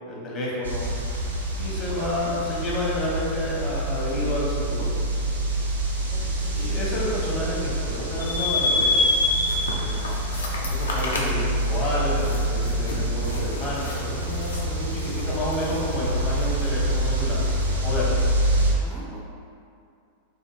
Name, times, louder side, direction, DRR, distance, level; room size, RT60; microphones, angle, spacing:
voice 1, 0.1-1.0 1.6-4.9 6.5-9.0 9.7-10.2 10.6-17.4 17.8-18.2, left 1 dB, 30° left, -6 dB, 0.7 m, -30 dB
sound 1, 0.6-18.7, right 1 dB, 75° right, 0.4 m, -27 dB
voice 2, 1.9-2.3 6.1-7.0 18.5-19.3, equal, 5° right, -7 dB, 0.3 m, -45 dB
sound 2, 8.2-17.7, left 2 dB, 65° left, 0.3 m, -29 dB
2.8 x 2.5 x 2.2 m, 2.4 s
figure-of-eight pair, 90°, 0 cm